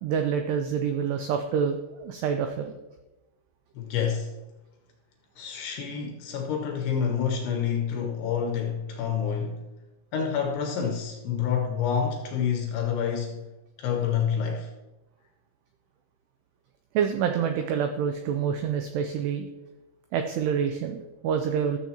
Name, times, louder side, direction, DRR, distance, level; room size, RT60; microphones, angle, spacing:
voice 1, 0.0-2.7 16.9-19.5 20.1-21.8, right 7 dB, 90° right, 2.3 m, -27 dB
voice 2, 3.8-4.3 5.4-9.6 10.1-13.5 13.8-14.7, left 7 dB, 80° left, 2.5 m, -28 dB
13.0 x 7.1 x 2.8 m
omnidirectional pair, 5.4 m